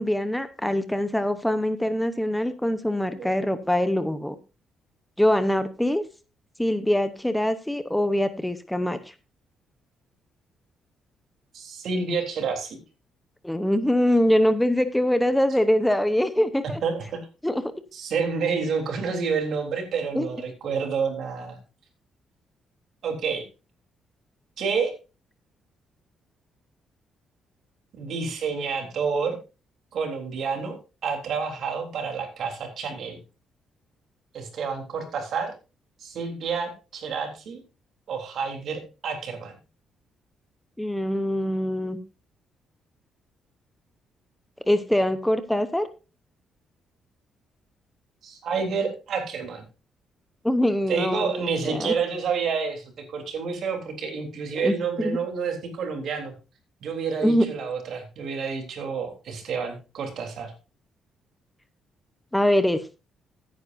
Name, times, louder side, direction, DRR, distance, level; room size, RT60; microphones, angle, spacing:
voice 1, 0.0-4.3 5.2-6.0 6.6-9.0 13.4-16.8 17.4-17.7 20.1-20.3 40.8-42.0 44.7-45.9 50.4-51.9 54.6-54.7 55.0-55.2 57.2-57.5 62.3-63.0, left 1 dB, 5° left, 11 dB, 1.0 m, -23 dB
voice 2, 11.5-12.8 16.6-17.2 17.9-21.6 23.0-23.5 24.6-24.9 28.0-29.4 29.9-33.2 34.3-35.5 36.0-37.6 38.1-39.5 48.2-49.6 50.9-56.3 56.8-60.5, right 5 dB, 65° right, 4 dB, 3.6 m, -29 dB
15.5 x 9.5 x 2.7 m, 0.30 s
cardioid pair, 90°, 0 cm